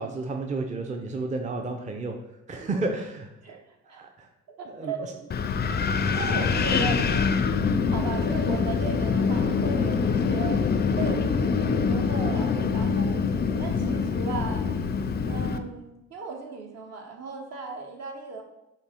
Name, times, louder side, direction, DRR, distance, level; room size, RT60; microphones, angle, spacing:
voice 1, 0.0-2.2 2.5-3.3 3.9-4.3 4.7-4.9 6.0-6.2, right 3 dB, 25° right, 3 dB, 0.5 m, -31 dB
voice 2, 4.6-5.1 6.1-7.1 7.9-10.6 11.0-14.7 15.3-18.4, right 4 dB, 60° right, 2 dB, 0.9 m, -36 dB
Wind, 5.3-15.6, left 5 dB, 35° left, 0.4 m, -25 dB
5.8 x 2.1 x 4.3 m, 0.91 s
cardioid pair, 75°, 30 cm